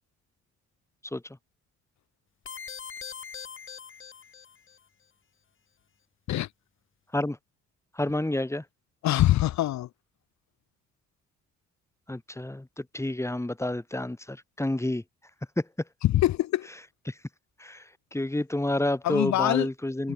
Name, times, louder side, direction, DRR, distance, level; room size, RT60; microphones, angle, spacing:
sound 1, 2.5-4.8, left 6 dB, 40° left, 3.7 m, -42 dB
voice 1, 7.9-8.6 12.1-15.0 15.6-15.7 17.1-17.2 17.6-17.8 18.1-20.1, left 1 dB, 10° left, 5.0 m, -29 dB
voice 2, 9.0-9.9 16.0-16.7 19.0-19.7 20.0-20.1, left 14 dB, 70° left, 0.7 m, -24 dB
cardioid pair, 90°, 30 cm